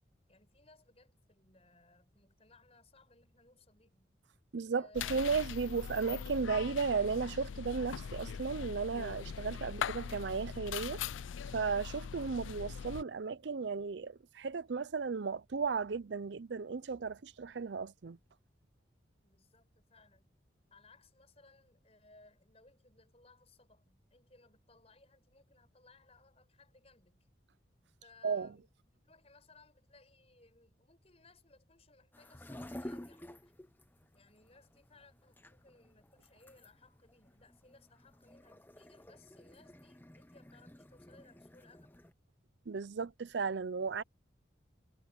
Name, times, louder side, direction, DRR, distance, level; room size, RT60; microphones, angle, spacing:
voice 1, 0.3-4.1 4.8-5.2 19.2-20.3 20.7-27.3 28.0-33.5 34.1-42.1, left 3 dB, 35° left, 5.8 m, -63 dB
voice 2, 4.5-11.0 11.5-18.2 28.2-28.5 42.7-44.0, right 5 dB, 65° right, 0.5 m, -35 dB
sound 1, 4.9-13.0, left 7 dB, 85° left, 0.4 m, -41 dB
sound 2, 32.1-42.1, left 1 dB, 10° left, 0.9 m, -51 dB
head